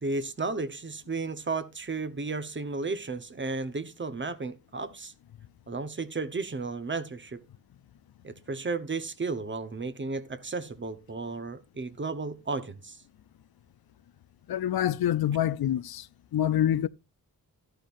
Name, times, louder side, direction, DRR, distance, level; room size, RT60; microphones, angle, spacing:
voice 1, 0.0-5.1 5.7-7.4 8.2-13.0, right 3 dB, 30° right, 1.0 m, -33 dB
voice 2, 14.5-16.1 16.3-16.9, left 11 dB, 90° left, 0.6 m, -26 dB
12.5 x 11.5 x 2.6 m
wide cardioid pair, 125°, 36 cm